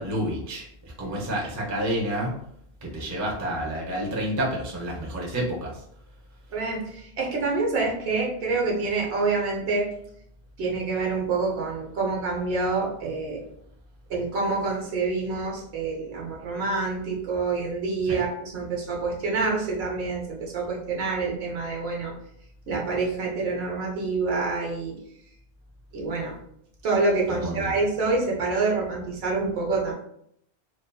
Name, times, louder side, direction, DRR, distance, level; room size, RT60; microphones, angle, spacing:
voice 1, 0.0-2.3 2.8-5.8 18.1-18.2 27.3-27.6, right 1 dB, 25° right, -3 dB, 0.4 m, -29 dB
voice 2, 6.5-9.9 10.6-13.4 14.1-22.1 22.7-25.0 25.9-26.4 26.8-29.9, right 3 dB, 70° right, -2 dB, 0.9 m, -27 dB
2.7 x 2.4 x 2.2 m, 0.72 s
omnidirectional pair, 1.1 m